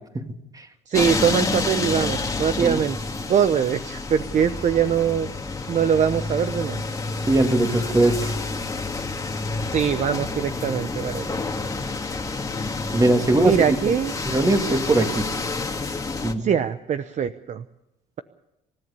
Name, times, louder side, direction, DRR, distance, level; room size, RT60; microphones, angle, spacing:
voice 1, 0.1-0.6 2.5-2.8 7.3-8.3 12.9-13.8 14.3-15.3 16.2-16.5, right 2 dB, 20° right, 5 dB, 2.8 m, -21 dB
sound 1, 0.9-16.3, left 3 dB, 20° left, 2.0 m, -29 dB
voice 2, 0.9-3.0 3.3-5.3 5.7-6.8 9.7-11.4 13.4-14.2 16.4-17.6, right 8 dB, 45° right, 11 dB, 0.9 m, -22 dB
28.0 x 14.0 x 7.0 m, 0.89 s
cardioid pair, 110°, 17 cm